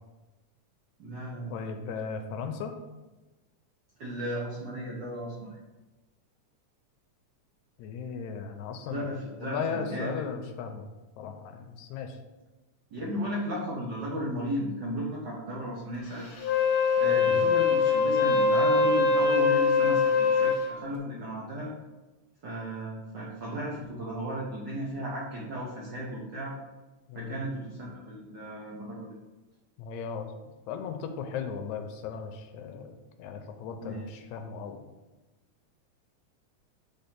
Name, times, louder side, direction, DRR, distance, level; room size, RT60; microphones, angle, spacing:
voice 1, 1.0-1.5 4.0-5.6 8.9-10.2 12.9-16.3 17.0-21.7 22.4-26.5 27.1-29.2 33.8-34.2, equal, 75° right, -4 dB, 1.0 m, -35 dB
voice 2, 1.5-2.7 7.8-9.1 9.4-10.9 11.2-12.2 17.2-17.3 27.1-27.4 29.8-30.3 30.7-34.8, left 6 dB, 80° left, 6 dB, 1.9 m, -36 dB
Wind instrument woodwind instrument, 16.4-20.6, left 4 dB, 60° left, 1.4 m, -23 dB
5.3 x 3.6 x 5.8 m, 1.1 s
omnidirectional pair, 3.5 m